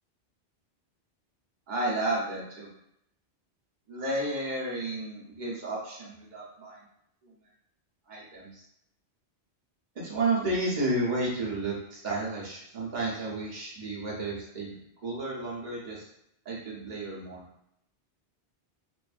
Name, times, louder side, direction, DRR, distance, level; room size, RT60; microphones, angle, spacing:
voice 1, 1.7-2.7 3.9-6.8 7.2-7.3 8.1-8.6 9.9-14.8 15.0-16.1 16.4-17.4, right 2 dB, 45° right, -5 dB, 0.9 m, -32 dB
2.6 x 2.5 x 2.4 m, 0.76 s
omnidirectional pair, 1.1 m